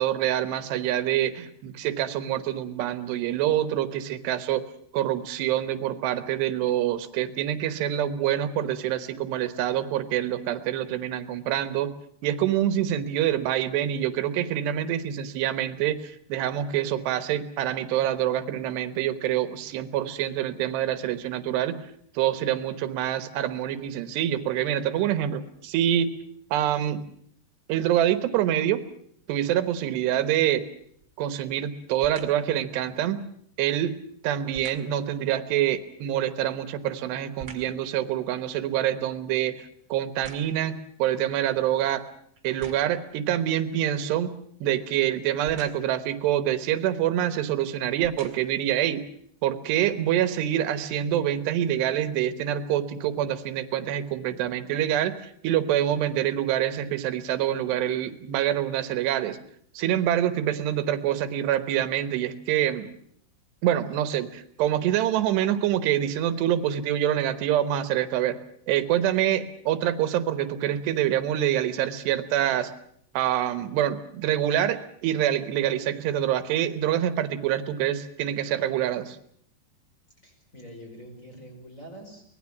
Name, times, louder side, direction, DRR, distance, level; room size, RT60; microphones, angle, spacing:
voice 1, 0.0-4.6 4.9-11.9 12.2-21.8 22.1-26.1 26.5-27.0 27.7-28.8 29.3-30.7 31.2-33.2 33.6-33.9 34.2-42.0 42.4-44.4 44.6-49.0 49.4-59.4 59.7-62.9 63.6-68.4 68.7-72.7 73.1-79.2, right 11 dB, 85° right, 11 dB, 3.3 m, -26 dB
sound 1, 30.8-31.2 32.0-32.5 34.5-35.0 36.4-37.8 38.3-40.8 41.5-41.6 42.4-43.1 45.4-46.0 47.0-47.2 47.8-48.7 49.3-49.4, right 6 dB, 40° right, 2.4 m, -47 dB
voice 2, 80.2-82.2, equal, 20° left, 3 dB, 5.1 m, -45 dB
24.5 x 19.0 x 7.2 m, 0.66 s
omnidirectional pair, 4.7 m